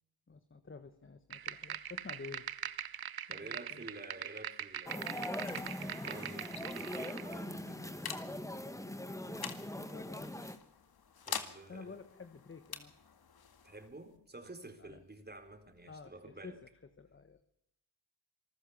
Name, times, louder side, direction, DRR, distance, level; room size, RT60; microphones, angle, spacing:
voice 1, 0.3-2.5 3.3-3.9 9.3-10.3 11.7-12.9 14.8-15.0 15.9-16.7 17.0-17.4, left 4 dB, 30° left, 9 dB, 1.4 m, -51 dB
sound 1, 1.3-7.3, right 9 dB, 60° right, 1.0 m, -42 dB
voice 2, 3.3-5.5 5.8-8.1 11.3-12.0 13.6-16.6, right 2 dB, 25° right, 6 dB, 3.8 m, -51 dB
sound 2, 4.7-16.0, left 7 dB, 65° left, 2.1 m, -48 dB
sound 3, 4.9-10.6, left 1 dB, 10° left, 1.6 m, -42 dB
26.0 x 15.0 x 7.2 m, 0.81 s
cardioid pair, 70°, 40 cm